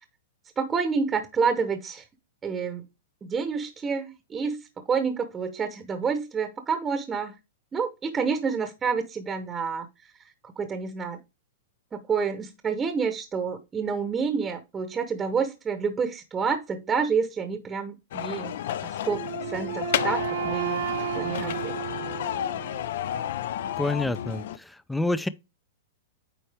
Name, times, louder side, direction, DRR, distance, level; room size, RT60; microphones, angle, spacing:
voice 1, 0.6-2.0 2.4-2.8 3.2-4.6 4.9-7.3 7.7-9.9 10.4-11.2 11.9-19.2 19.5-21.8, right 5 dB, 15° right, 0.9 m, -28 dB
sound 1, 18.1-24.6, left 11 dB, 65° left, 0.5 m, -31 dB
Wind instrument woodwind instrument, 19.0-23.0, right 11 dB, 80° right, 1.1 m, -33 dB
voice 2, 23.8-25.3, left 2 dB, 5° left, 0.4 m, -28 dB
8.9 x 4.4 x 3.4 m
hypercardioid pair, 150°, 0 cm